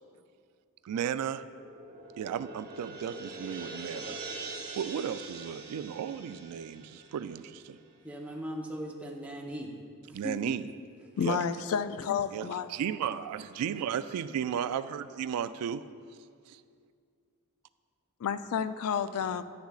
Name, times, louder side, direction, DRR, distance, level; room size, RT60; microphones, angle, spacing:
voice 1, 0.8-1.4 2.2-4.2 4.8-7.8 10.1-10.7 11.2-11.4 12.3-15.8 16.5-16.6, right 8 dB, 80° right, 16 dB, 0.3 m, -34 dB
sound 1, 1.4-7.9, right 3 dB, 45° right, 0.8 m, -44 dB
voice 2, 8.0-9.7 10.1-10.5, equal, 5° right, -1 dB, 0.8 m, -38 dB
voice 3, 11.2-12.7 18.2-19.4, left 7 dB, 65° left, 12 dB, 0.3 m, -30 dB
10.0 x 9.4 x 2.4 m, 2.2 s
head